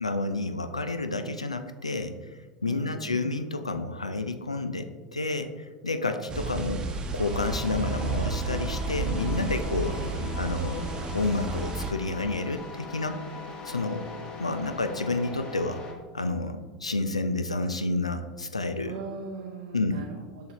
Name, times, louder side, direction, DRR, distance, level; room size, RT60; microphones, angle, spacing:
voice 1, 0.0-2.2 2.6-10.0 10.4-13.2 13.6-14.1 14.4-15.8 16.1-19.0 19.7-20.1, left 2 dB, 85° left, 8 dB, 0.4 m, -30 dB
voice 2, 2.6-3.4 9.8-10.6 18.8-20.5, right 5 dB, 60° right, 1 dB, 0.6 m, -41 dB
sound 1, 6.3-11.9, right 3 dB, 25° right, 0.8 m, -32 dB
sound 2, 7.3-15.9, left 3 dB, 35° left, 1.3 m, -41 dB
7.5 x 5.7 x 2.9 m, 1.3 s
figure-of-eight pair, 80°, 3 cm